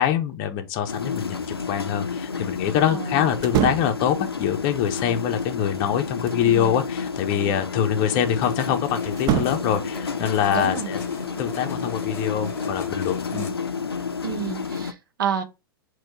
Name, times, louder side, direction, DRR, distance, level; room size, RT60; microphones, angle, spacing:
voice 1, 0.0-11.0 11.4-13.5, left 9 dB, 40° left, 0.6 m, -24 dB
sound 1, 0.9-14.9, left 5 dB, 90° left, 0.5 m, -30 dB
voice 2, 2.9-3.3 6.4-6.7 10.5-10.9 13.3-13.6 14.2-15.4, right 8 dB, 60° right, 0.7 m, -30 dB
sound 2, 3.4-4.0 5.7-6.5 9.1-9.8, right 10 dB, 30° right, 0.4 m, -26 dB
sound 3, 8.4-13.5, left 3 dB, 20° left, 1.0 m, -40 dB
4.2 x 2.2 x 4.1 m
figure-of-eight pair, 100°, 12 cm